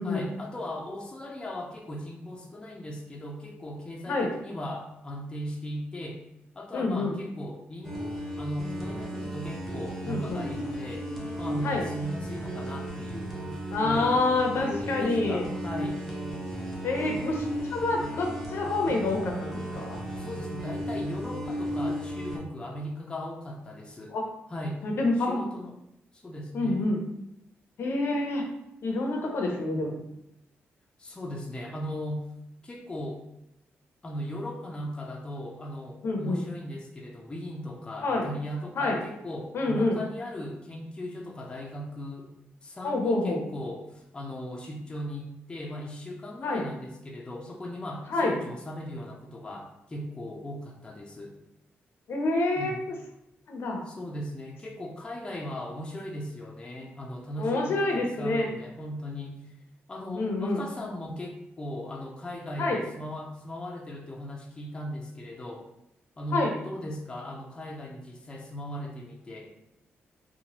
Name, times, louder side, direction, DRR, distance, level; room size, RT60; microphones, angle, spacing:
voice 1, 0.0-6.2 6.6-11.1 11.4-14.1 14.5-16.0 20.2-24.2 24.5-24.8 25.2-25.8 26.1-26.9 31.0-32.2 32.6-33.2 34.0-42.3 42.6-51.3 52.6-52.8 53.9-59.5 59.9-65.7 66.2-69.5, equal, 20° left, 0 dB, 0.4 m, -38 dB
voice 2, 6.7-7.1 10.1-10.5 11.6-11.9 13.7-15.5 16.8-19.8 24.1-24.2 24.8-25.4 26.5-27.0 27.8-28.5 28.8-30.0 36.0-36.4 38.0-38.3 38.8-39.0 39.5-40.0 42.8-43.4 46.4-46.6 48.1-48.3 52.1-52.7 53.5-53.8 57.4-58.5 60.2-60.6 62.6-62.8 66.3-66.5, left 2 dB, 65° left, 1 dB, 0.6 m, -27 dB
sound 1, 7.8-22.4, equal, ahead, 0.8 m, -35 dB
2.9 x 2.1 x 2.9 m, 0.82 s
cardioid pair, 95°, 4 cm